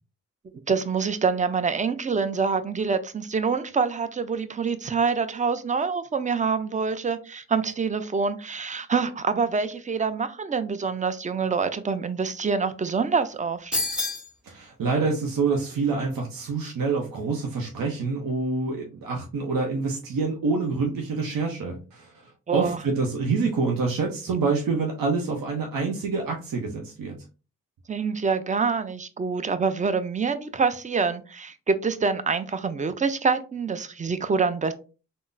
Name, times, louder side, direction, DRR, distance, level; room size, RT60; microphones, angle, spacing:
voice 1, 0.7-13.8 22.5-22.8 27.9-34.7, right 5 dB, 20° right, 0.4 m, -26 dB
sound 1, 13.7-14.3, left 2 dB, 5° right, 0.8 m, -27 dB
voice 2, 14.4-27.1, right 4 dB, 65° right, 0.7 m, -27 dB
3.6 x 2.0 x 2.5 m
cardioid pair, 50°, 37 cm